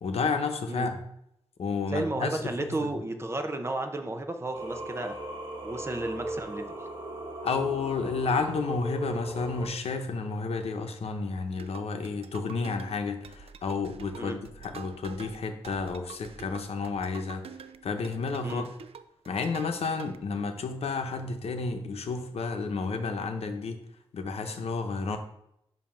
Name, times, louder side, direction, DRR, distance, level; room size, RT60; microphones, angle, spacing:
voice 1, 0.0-1.0 1.6-2.9 7.4-17.4 17.8-18.6 19.3-23.8 24.1-25.2, left 4 dB, 90° left, 6 dB, 0.7 m, -31 dB
voice 2, 1.9-5.2 5.6-6.7 14.1-14.4 18.4-18.7, right 2 dB, 25° right, 5 dB, 0.7 m, -33 dB
Singing, 4.5-9.7, right 1 dB, 50° right, 1.2 m, -38 dB
sound 1, 11.5-20.2, right 7 dB, 75° right, 0.4 m, -47 dB
7.3 x 2.8 x 5.6 m, 0.78 s
wide cardioid pair, 140°, 10 cm